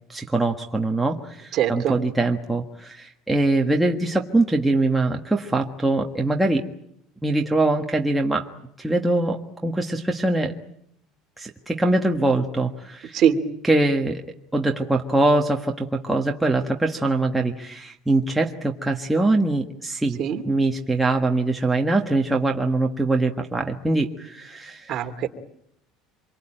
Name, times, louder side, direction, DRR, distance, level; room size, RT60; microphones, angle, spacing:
voice 1, 0.1-6.7 7.2-8.5 8.8-10.5 11.4-13.2 13.6-14.2 14.5-20.2 20.4-24.9, right 2 dB, 5° right, 1 dB, 1.5 m, -23 dB
voice 2, 1.6-1.9 13.1-13.4 20.2-20.4 24.9-25.3, right 9 dB, 40° right, 6 dB, 2.6 m, -21 dB
26.5 x 24.0 x 8.9 m, 0.74 s
cardioid pair, 155°, 0 cm